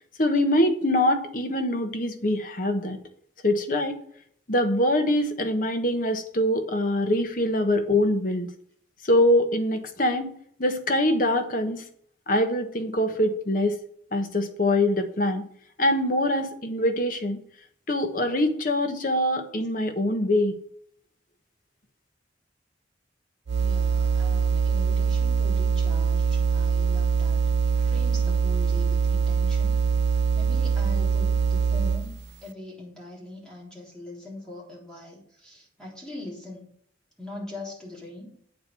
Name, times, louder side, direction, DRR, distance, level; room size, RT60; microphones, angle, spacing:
voice 1, 0.2-3.0 3.4-4.0 4.5-8.5 9.0-10.3 10.6-11.8 12.3-13.8 14.1-15.4 15.8-17.4 17.9-20.5, left 1 dB, 45° left, 6 dB, 1.2 m, -24 dB
sound 1, 23.5-32.2, right 6 dB, 65° right, 0.5 m, -23 dB
voice 2, 23.6-27.4 27.8-32.1 32.4-36.7 37.2-38.3, left 1 dB, 5° left, -5 dB, 3.6 m, -41 dB
8.9 x 4.5 x 6.8 m, 0.62 s
head